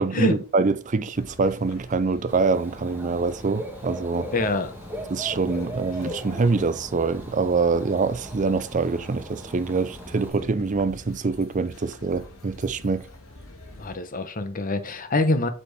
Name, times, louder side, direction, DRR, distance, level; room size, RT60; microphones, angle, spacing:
voice 1, 0.0-4.3 5.1-13.1, right 4 dB, 35° right, 0.5 m, -25 dB
sound 1, 1.1-14.0, left 1 dB, 85° left, 1.9 m, -47 dB
Dog / Bird, 2.3-10.3, equal, 10° right, 1.4 m, -38 dB
voice 2, 4.3-4.7 13.8-15.5, left 2 dB, 40° left, 0.9 m, -25 dB
8.1 x 4.4 x 4.7 m
head